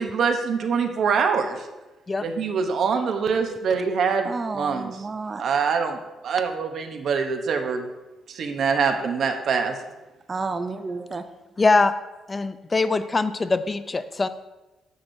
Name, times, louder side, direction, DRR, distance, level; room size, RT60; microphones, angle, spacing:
voice 1, 0.0-1.6 2.2-5.0 5.4-7.9 8.3-9.8, right 5 dB, 65° right, 5 dB, 0.8 m, -24 dB
voice 2, 4.2-5.4 10.3-11.2, right 3 dB, 30° right, 9 dB, 0.4 m, -31 dB
voice 3, 11.6-11.9 12.3-14.3, left 3 dB, 25° left, 12 dB, 0.4 m, -22 dB
9.3 x 6.1 x 2.6 m, 1.1 s
cardioid pair, 90°, 0 cm